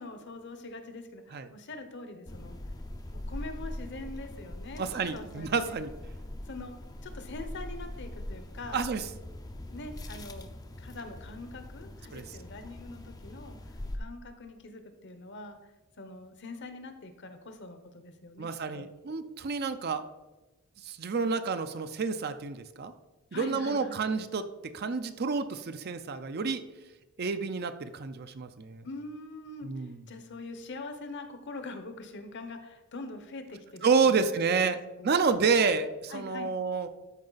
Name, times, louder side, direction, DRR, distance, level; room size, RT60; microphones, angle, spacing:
voice 1, 0.0-2.5 3.1-4.8 5.1-5.8 6.4-8.8 9.7-10.5 10.8-15.6 16.0-18.5 18.7-18.9 21.2-21.3 23.3-24.0 28.8-35.2 36.1-36.5, left 2 dB, 55° left, 8 dB, 0.9 m, -43 dB
sound 1, 2.3-14.0, left 1 dB, 20° left, 0.5 m, -42 dB
voice 2, 4.8-5.9 8.7-9.0 12.1-12.2 18.4-20.0 20.8-22.9 23.3-26.7 27.2-28.9 29.6-30.0 33.8-34.8 35.0-36.9, right 5 dB, 50° right, 10 dB, 0.5 m, -29 dB
13.0 x 4.8 x 4.0 m, 1.1 s
head